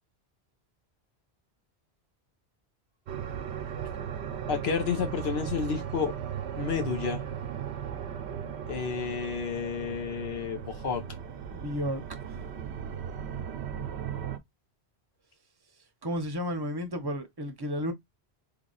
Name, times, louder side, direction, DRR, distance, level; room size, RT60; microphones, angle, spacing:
sound 1, 3.1-14.4, right 8 dB, 90° right, 0.9 m, -37 dB
voice 1, 4.5-6.1 6.6-7.2 8.7-11.0, left 6 dB, 75° left, 1.1 m, -31 dB
voice 2, 11.5-12.4 16.0-17.9, equal, 25° right, 0.6 m, -33 dB
3.4 x 2.2 x 3.8 m
omnidirectional pair, 1.1 m